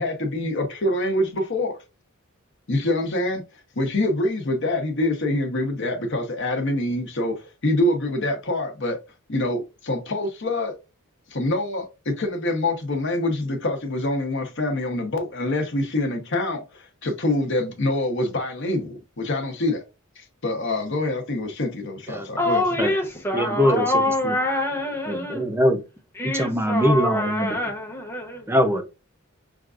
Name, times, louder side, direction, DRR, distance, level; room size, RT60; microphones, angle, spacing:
voice 1, 0.0-1.8 2.7-3.4 3.8-9.0 9.3-10.8 11.3-19.8 20.2-22.6, left 1 dB, 55° left, 0.9 m, -25 dB
voice 2, 22.4-25.5 26.2-28.5, left 1 dB, 10° left, 0.9 m, -25 dB
voice 3, 23.3-24.4 25.1-25.8 26.2-27.6 28.5-28.8, equal, 10° right, 0.6 m, -22 dB
5.8 x 2.4 x 2.4 m
head